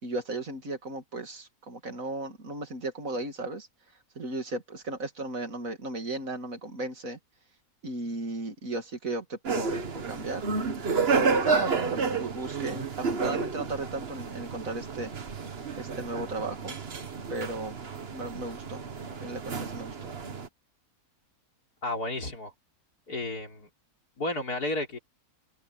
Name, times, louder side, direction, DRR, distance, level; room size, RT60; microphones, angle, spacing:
voice 1, 0.0-3.7 4.2-7.2 7.8-10.5 11.1-15.1 15.8-16.7 17.3-17.8 18.1-18.8 19.1-20.1, right 2 dB, 60° right, 3.0 m, -35 dB
sound 1, 9.5-20.5, right 5 dB, 45° right, 1.5 m, -31 dB
voice 2, 21.8-22.5 23.1-23.7 24.2-25.0, left 2 dB, 85° left, 4.8 m, -32 dB
omnidirectional pair, 1.6 m